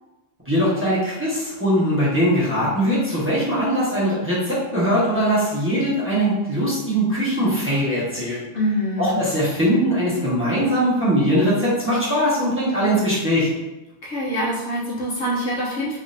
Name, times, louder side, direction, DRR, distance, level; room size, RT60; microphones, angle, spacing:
voice 1, 0.4-8.5 9.0-13.5, equal, 10° right, -9 dB, 1.1 m, -21 dB
voice 2, 8.5-9.2 14.0-16.0, equal, 75° left, -5 dB, 1.2 m, -25 dB
3.7 x 3.3 x 2.6 m, 1.0 s
omnidirectional pair, 1.2 m